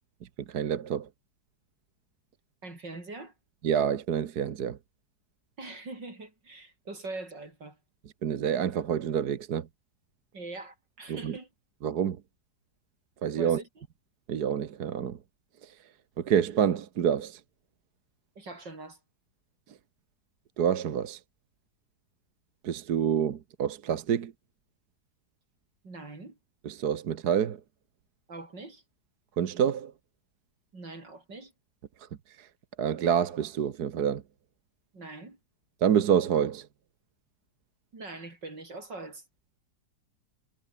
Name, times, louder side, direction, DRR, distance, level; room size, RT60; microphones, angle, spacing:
voice 1, 0.5-1.1 3.6-4.8 8.2-9.7 11.1-11.4 11.8-12.2 13.2-13.6 14.3-15.2 15.6-15.7 16.2-17.4 20.6-21.2 22.6-24.3 26.6-27.6 29.4-29.9 32.4-32.5 32.8-34.2 35.8-36.7, right 8 dB, 65° right, 1.7 m, -27 dB
voice 2, 2.6-3.3 5.6-7.8 10.3-11.5 13.4-13.7 18.4-19.0 25.8-26.4 28.3-28.8 30.7-31.5 34.9-35.4 37.9-39.2, right 2 dB, 90° right, 6.6 m, -42 dB
omnidirectional pair, 1.9 m